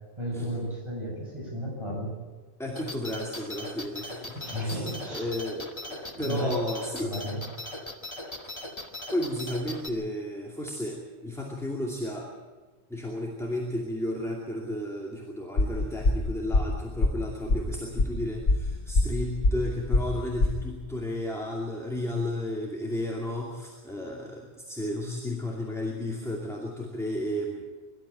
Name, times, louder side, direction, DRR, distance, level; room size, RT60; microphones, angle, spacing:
voice 1, 0.2-2.2 4.3-5.3 6.1-6.5 7.0-7.4, equal, 25° right, -3 dB, 7.6 m, -33 dB
voice 2, 2.6-4.8 5.1-7.1 8.4-8.7 9.1-12.3 12.9-27.6, left 1 dB, ahead, -1 dB, 2.5 m, -33 dB
sound 1, 2.8-9.9, left 1 dB, 25° left, 1.9 m, -39 dB
sound 2, 15.6-20.7, left 2 dB, 85° left, 1.8 m, -24 dB
23.5 x 13.0 x 8.8 m, 1.3 s
omnidirectional pair, 1.1 m